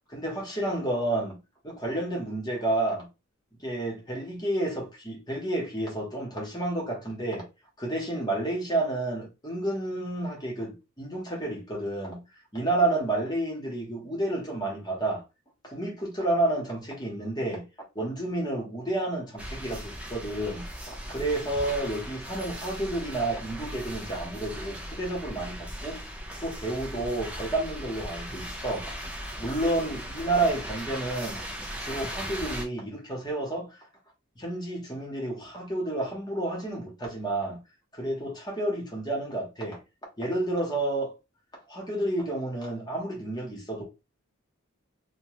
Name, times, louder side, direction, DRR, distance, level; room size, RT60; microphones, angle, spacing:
voice 1, 0.1-1.4 1.6-3.1 3.6-7.5 7.8-12.2 12.5-15.2 15.6-17.7 17.9-26.0 26.4-28.9 29.4-31.4 31.8-33.8 34.4-37.6 37.9-39.8 40.2-41.1 41.7-43.8, right 2 dB, 20° left, 1.1 m, -30 dB
sound 1, 19.4-32.6, equal, 5° right, 0.5 m, -38 dB
3.0 x 2.2 x 3.0 m
head